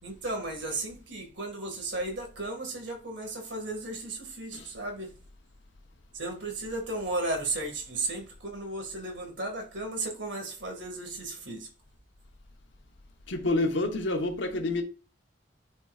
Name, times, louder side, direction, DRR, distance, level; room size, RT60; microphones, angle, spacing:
voice 1, 0.0-5.1 6.1-11.7, right 2 dB, 75° right, 2.0 m, -35 dB
voice 2, 13.3-14.8, left 2 dB, 80° left, 1.0 m, -28 dB
10.0 x 4.6 x 2.4 m
head